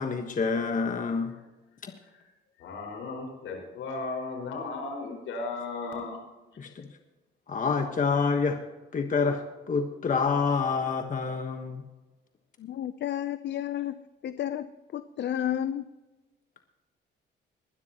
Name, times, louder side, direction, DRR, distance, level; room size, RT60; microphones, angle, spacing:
voice 1, 0.0-1.3 1.8-1.9 6.6-6.9 7.5-8.6 8.9-11.8, left 5 dB, 40° left, 5 dB, 1.3 m, -27 dB
voice 2, 2.6-6.2, left 3 dB, 80° left, 2 dB, 5.2 m, -35 dB
voice 3, 12.6-14.0 14.2-15.8, left 11 dB, 60° left, 12 dB, 0.6 m, -32 dB
21.5 x 12.0 x 3.0 m, 1.1 s
cardioid pair, 90°, 20 cm